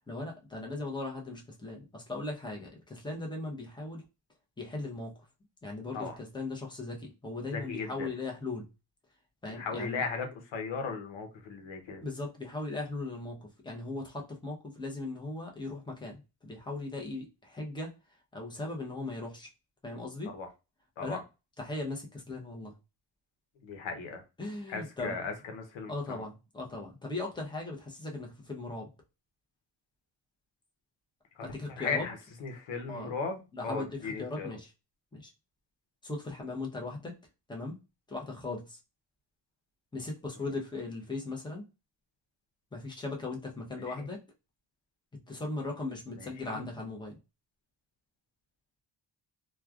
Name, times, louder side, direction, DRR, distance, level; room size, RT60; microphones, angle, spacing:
voice 1, 0.1-4.0 4.6-5.1 5.6-8.6 9.4-10.0 12.0-17.9 18.3-19.5 19.8-20.3 21.0-21.2 21.6-22.7 24.4-25.2 25.9-28.9 31.4-32.1 32.9-33.1 33.5-34.7 35.1-35.3 36.0-37.2 37.5-37.8 38.1-38.8 39.9-41.6 42.7-44.2 45.1-47.2, left 2 dB, 10° left, 0.8 m, -38 dB
voice 2, 7.5-8.1 9.6-12.0 20.3-20.5 21.0-21.2 23.6-24.2 24.7-26.2 31.4-34.5 43.9-44.1 46.2-46.6, left 4 dB, 85° left, 0.9 m, -37 dB
3.1 x 2.3 x 2.3 m
cardioid pair, 115°, 44 cm